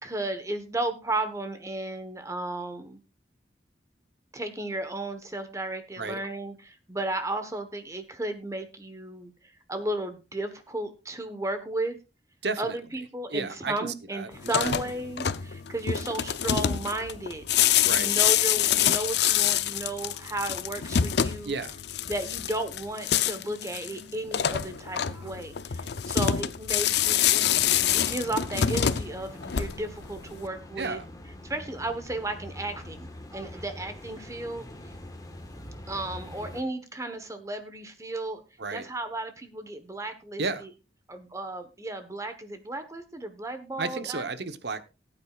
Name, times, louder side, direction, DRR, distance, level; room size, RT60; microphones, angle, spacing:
voice 1, 0.0-3.0 4.3-9.3 9.7-12.0 12.6-21.6 22.0-27.5 27.8-31.0 31.4-34.9 35.9-38.4 38.7-40.7 41.1-44.2, right 2 dB, 15° right, 8 dB, 1.1 m, -34 dB
voice 2, 12.4-12.7 13.3-14.3 14.6-14.9 17.8-18.1 21.4-21.8 30.8-31.0 38.6-38.8 40.4-40.6 43.8-44.8, right 4 dB, 65° right, 11 dB, 1.0 m, -32 dB
sound 1, 14.4-30.0, left 9 dB, 65° left, 0.6 m, -26 dB
sound 2, 27.4-36.6, left 1 dB, 20° left, 1.4 m, -44 dB
18.5 x 9.0 x 2.4 m, 0.28 s
head